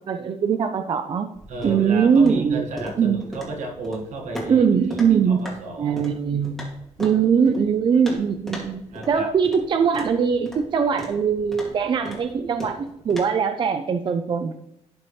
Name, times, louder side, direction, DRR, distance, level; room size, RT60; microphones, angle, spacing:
voice 1, 0.1-1.3 1.6-2.7 3.0-3.2 4.5-5.4 5.8-6.7 7.0-14.5, right 6 dB, 40° right, 8 dB, 0.4 m, -21 dB
sound 1, 1.3-13.2, equal, 5° left, 2.2 m, -40 dB
voice 2, 1.5-4.7 5.1-6.0 8.9-9.3, right 2 dB, 75° right, 2 dB, 1.6 m, -33 dB
12.0 x 4.2 x 3.2 m, 0.80 s
cardioid pair, 140°, 12 cm